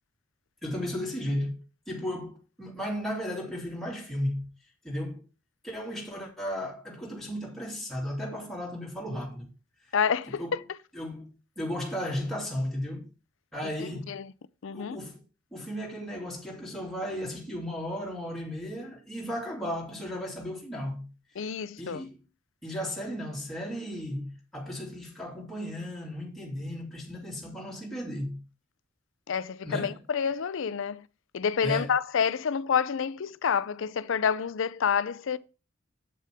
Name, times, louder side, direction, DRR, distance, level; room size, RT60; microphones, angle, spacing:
voice 1, 0.6-1.6 1.9-4.4 4.8-5.2 5.6-9.5 10.3-10.6 10.9-13.1 13.5-14.2 14.7-15.2 15.5-21.1 21.8-22.2 22.6-28.4 29.6-30.0 31.6-32.0, equal, ahead, 2.7 m, -35 dB
voice 2, 9.9-10.6 13.8-14.3 14.6-15.0 21.4-22.0 29.3-31.0 31.3-35.4, left 7 dB, 65° left, 0.5 m, -28 dB
8.1 x 7.5 x 3.5 m
head